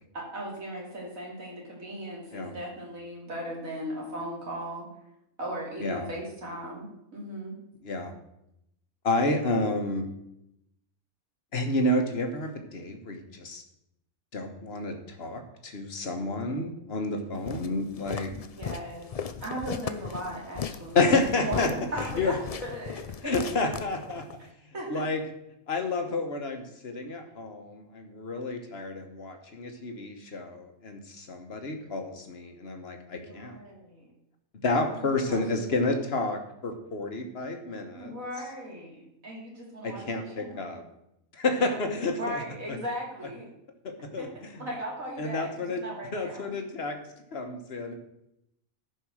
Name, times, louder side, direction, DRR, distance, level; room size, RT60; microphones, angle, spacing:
voice 1, 0.1-4.9 5.4-7.6 18.3-19.1 19.4-21.0 21.4-22.3 22.6-23.5 24.4-24.5 24.7-25.0 33.1-34.1 34.8-35.4 35.7-35.9 37.9-40.8 41.5-41.8 42.1-43.5 44.2-44.3 44.6-46.5, right 1 dB, 70° right, -2 dB, 3.4 m, -37 dB
voice 2, 7.8-8.1 9.0-10.1 11.5-13.6 14.3-18.3 20.9-21.7 22.0-22.4 23.2-24.2 24.9-25.2 25.7-33.6 34.6-38.2 39.8-40.8 41.3-42.4 42.7-42.8 43.8-44.7 45.2-45.8 46.1-47.0 47.3-47.9, left 2 dB, 50° left, 5 dB, 1.5 m, -30 dB
Walk footsteps, 17.5-24.4, left 6 dB, 70° left, 0.3 m, -37 dB
13.5 x 5.5 x 6.3 m, 0.82 s
omnidirectional pair, 1.5 m